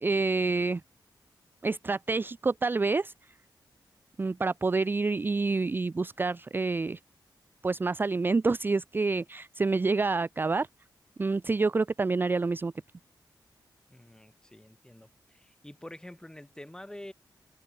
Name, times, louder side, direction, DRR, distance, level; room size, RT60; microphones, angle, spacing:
voice 1, 0.0-0.8 1.6-3.1 4.2-7.0 7.6-10.7 11.2-12.7, right 3 dB, 25° right, 0.5 m, -27 dB
voice 2, 13.9-17.1, left 1 dB, 10° left, 6.0 m, -47 dB
wide cardioid pair, 105°, 8 cm